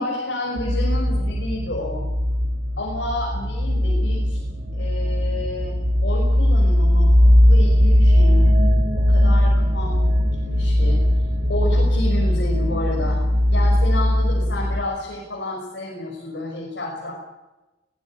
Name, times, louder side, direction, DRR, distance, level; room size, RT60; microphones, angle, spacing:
voice 1, 0.0-2.0 2.8-4.4 4.7-8.5 8.9-10.1 10.5-13.2 13.5-17.1, left 1 dB, 65° left, -2 dB, 5.8 m, -30 dB
sound 1, 0.6-14.8, left 1 dB, 80° right, 6.0 m, -18 dB
23.0 x 18.0 x 8.7 m, 1.0 s
head